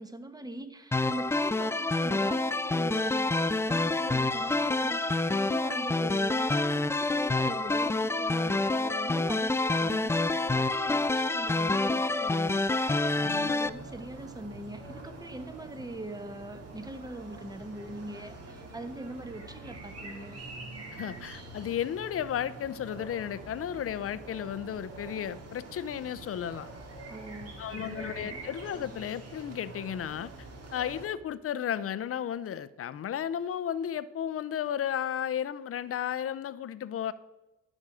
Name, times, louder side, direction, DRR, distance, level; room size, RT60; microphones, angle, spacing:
voice 1, 0.0-20.4 27.1-28.4, right 2 dB, 15° right, 9 dB, 1.0 m, -42 dB
sound 1, 0.9-13.7, left 2 dB, 10° left, 0.3 m, -27 dB
voice 2, 13.2-13.6 20.9-26.7 27.6-37.1, left 9 dB, 50° left, 16 dB, 0.6 m, -34 dB
sound 2, 13.6-31.1, right 2 dB, 55° right, 2.1 m, -45 dB
12.5 x 6.3 x 4.9 m, 1.1 s
cardioid pair, 90°, 30 cm